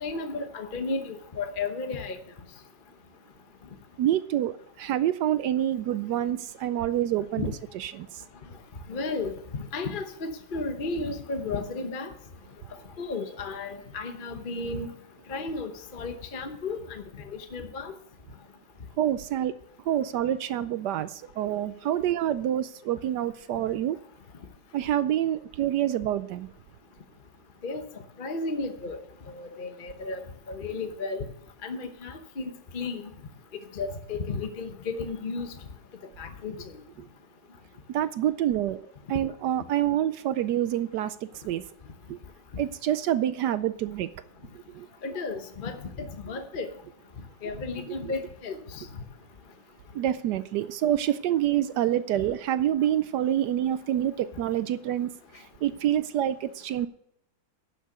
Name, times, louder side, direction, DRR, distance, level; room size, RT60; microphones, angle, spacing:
voice 1, 0.0-2.2 7.4-7.5 8.9-12.1 13.0-14.9 15.3-17.9 27.6-27.9 28.2-29.0 29.3-31.2 31.6-33.1 33.7-35.5 36.2-36.6 45.0-46.7 47.4-49.0, left 3 dB, 40° left, 6 dB, 0.8 m, -33 dB
voice 2, 4.0-7.4 7.7-8.2 19.0-19.5 19.9-24.0 24.7-26.5 37.0-37.1 37.9-41.6 42.1-42.2 42.6-44.1 44.5-44.9 47.9-48.0 49.9-56.9, right 11 dB, 75° right, 14 dB, 1.0 m, -27 dB
11.0 x 6.6 x 6.6 m, 0.75 s
omnidirectional pair, 2.1 m